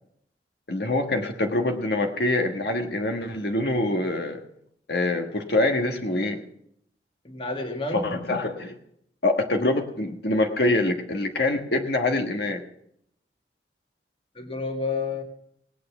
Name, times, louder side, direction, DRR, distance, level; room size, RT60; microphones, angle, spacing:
voice 1, 0.7-4.4 4.9-6.4 7.9-8.7 9.2-12.6, left 2 dB, 65° left, 4 dB, 1.4 m, -25 dB
voice 2, 7.2-8.1 14.4-15.2, left 3 dB, 30° left, 4 dB, 1.8 m, -30 dB
18.0 x 9.3 x 6.0 m, 0.72 s
head